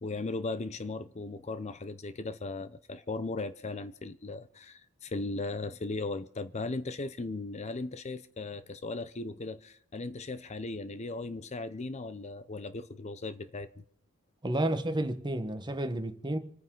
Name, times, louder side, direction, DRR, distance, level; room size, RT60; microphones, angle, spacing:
voice 1, 0.0-13.8, left 3 dB, 30° left, 0.6 m, -37 dB
voice 2, 14.4-16.4, right 1 dB, 20° right, 1.2 m, -31 dB
27.5 x 9.4 x 3.8 m
head